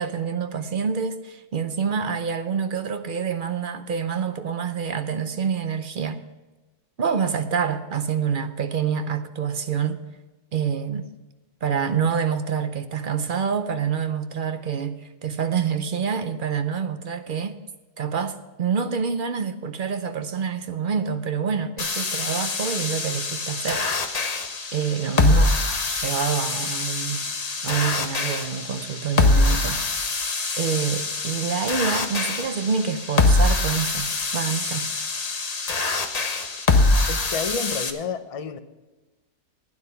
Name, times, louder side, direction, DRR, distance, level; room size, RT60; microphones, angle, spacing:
voice 1, 0.0-6.2 7.0-10.0 10.5-11.1 11.6-17.6 18.0-23.8 24.7-25.5 25.9-27.2 27.6-29.8 30.6-34.9, right 6 dB, 55° right, 0.5 m, -27 dB
sound 1, 21.8-37.9, left 3 dB, 35° left, 0.8 m, -24 dB
voice 2, 37.1-38.6, left 5 dB, 60° left, 0.3 m, -30 dB
12.0 x 9.7 x 5.6 m
omnidirectional pair, 1.6 m